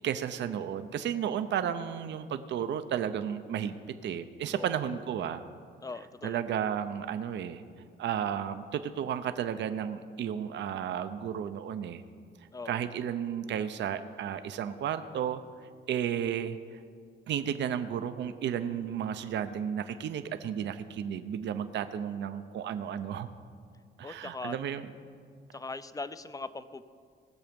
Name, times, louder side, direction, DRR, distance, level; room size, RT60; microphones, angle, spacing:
voice 1, 0.0-3.7 4.0-5.4 6.2-7.6 8.0-12.0 12.7-15.4 15.9-16.8 17.3-23.3 24.0-24.9, right 9 dB, 65° right, 10 dB, 0.6 m, -33 dB
voice 2, 5.8-6.4 12.5-12.8 24.0-24.6 25.5-26.8, left 3 dB, 15° left, 14 dB, 0.5 m, -40 dB
18.5 x 6.9 x 5.2 m, 2.1 s
cardioid pair, 90°, 20 cm